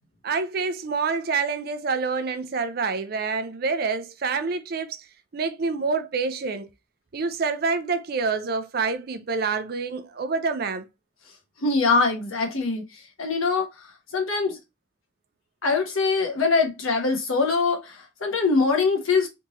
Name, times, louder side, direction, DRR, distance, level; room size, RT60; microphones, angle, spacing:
voice 1, 0.2-5.1 5.3-6.7 7.1-10.9, right 4 dB, 50° right, 0.4 m, -27 dB
voice 2, 11.6-12.8 13.2-13.7 14.1-14.6 15.6-19.3, left 4 dB, 85° left, 1.1 m, -23 dB
3.4 x 2.7 x 2.9 m
head